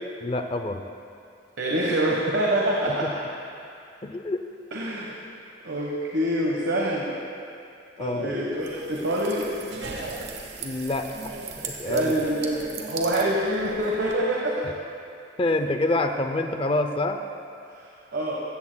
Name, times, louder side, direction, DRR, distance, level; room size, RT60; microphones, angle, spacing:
voice 1, 0.2-0.8 3.0-3.1 4.0-4.4 8.0-8.3 10.6-12.1 15.4-17.2, left 2 dB, 30° left, 6 dB, 0.5 m, -27 dB
voice 2, 1.6-3.1 4.7-5.2 5.6-7.1 8.0-9.5 11.8-14.7 17.7-17.9 18.1-18.4, right 1 dB, 85° right, -3 dB, 1.3 m, -26 dB
sound 1, 8.5-14.2, right 3 dB, 65° right, 1.2 m, -37 dB
16.0 x 14.5 x 2.3 m, 2.5 s
head